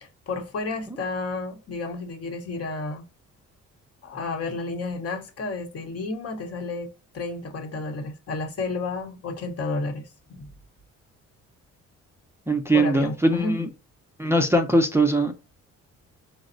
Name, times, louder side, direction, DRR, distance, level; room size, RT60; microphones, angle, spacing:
voice 1, 0.0-3.1 4.0-10.5 12.7-13.6, left 3 dB, 55° left, 0.9 m, -31 dB
voice 2, 12.5-13.7 14.2-15.3, right 1 dB, 10° right, 0.4 m, -21 dB
4.0 x 2.0 x 2.5 m
cardioid pair, 90°, 30 cm